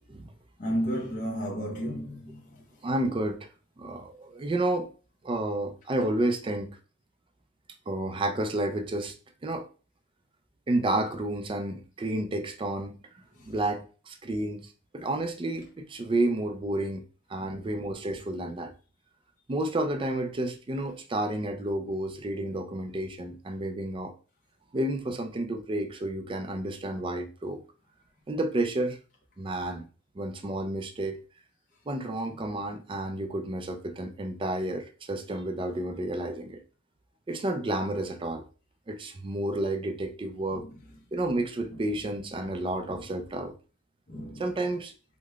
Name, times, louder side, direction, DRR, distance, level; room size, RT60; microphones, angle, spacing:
voice 1, 0.6-2.4 17.6-17.7 44.1-44.4, equal, 45° left, 0.8 m, -32 dB
voice 2, 2.8-3.5 3.8-4.9 5.2-6.8 7.9-9.1 9.4-9.7 10.7-12.9 13.5-14.7 14.9-17.0 17.3-18.7 19.5-24.1 24.7-27.6 28.3-29.0 29.4-29.9 30.2-31.2 31.9-36.6 37.3-38.5 38.9-40.7 41.1-43.6 44.4-44.9, right 1 dB, 25° right, 0.4 m, -31 dB
4.8 x 2.1 x 2.3 m
head